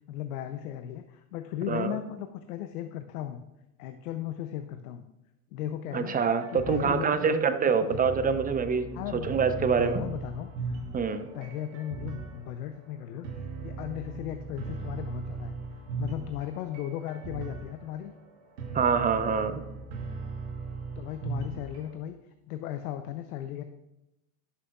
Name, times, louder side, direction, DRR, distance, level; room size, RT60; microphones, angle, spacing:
voice 1, 0.1-3.4 3.8-5.0 5.5-6.1 6.5-7.4 7.8-8.0 8.9-10.8 11.3-13.3 13.6-15.6 16.0-18.1 21.0-22.2 22.5-23.6, left 11 dB, 85° left, 8 dB, 0.6 m, -36 dB
voice 2, 5.9-9.0 9.3-10.0 10.9-11.3 18.7-19.6, right 6 dB, 20° right, 10 dB, 0.6 m, -26 dB
sound 1, 6.0-21.9, right 4 dB, 85° right, 1.5 m, -39 dB
11.0 x 6.1 x 2.3 m, 0.91 s
hypercardioid pair, 90°, 43 cm